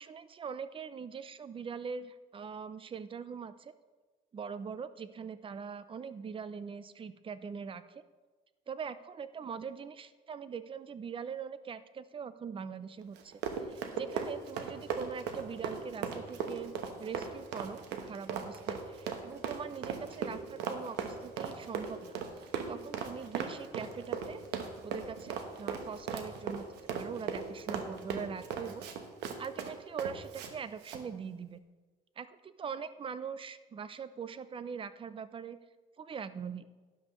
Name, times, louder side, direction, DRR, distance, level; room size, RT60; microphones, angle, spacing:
voice 1, 0.0-3.7 4.3-8.0 8.7-16.7 17.0-24.4 24.8-26.7 26.9-28.8 29.4-31.6 32.2-35.6 36.0-36.7, right 6 dB, 30° right, 14 dB, 0.5 m, -42 dB
Run, 13.1-30.5 30.8-31.0, right 6 dB, 90° right, 1.1 m, -38 dB
12.5 x 10.5 x 3.1 m, 1.3 s
cardioid pair, 110°, 17 cm